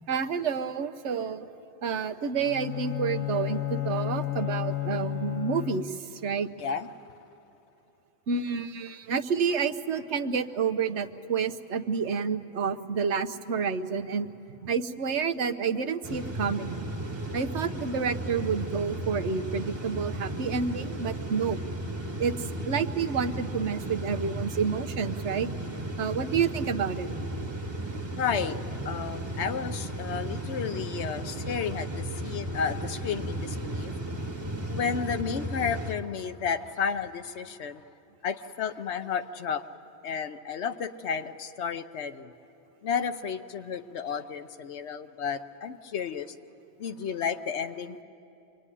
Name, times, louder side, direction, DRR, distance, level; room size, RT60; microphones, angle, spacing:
voice 1, 0.1-1.5 1.8-6.0 6.2-6.5 8.3-14.3 14.6-16.8 17.3-21.6 22.2-25.6 26.0-27.1, right 6 dB, 80° right, 9 dB, 1.2 m, -29 dB
Bowed string instrument, 2.4-6.1, left 14 dB, 30° left, 1.1 m, -32 dB
sound 1, 16.0-36.0, right 1 dB, 25° right, 1.2 m, -35 dB
voice 2, 28.2-28.6 28.8-33.9 34.7-37.8 38.2-39.6 40.0-42.3 42.8-46.3 46.8-48.0, left 6 dB, 75° left, 10 dB, 1.1 m, -32 dB
26.0 x 22.5 x 9.9 m, 2.9 s
omnidirectional pair, 1.2 m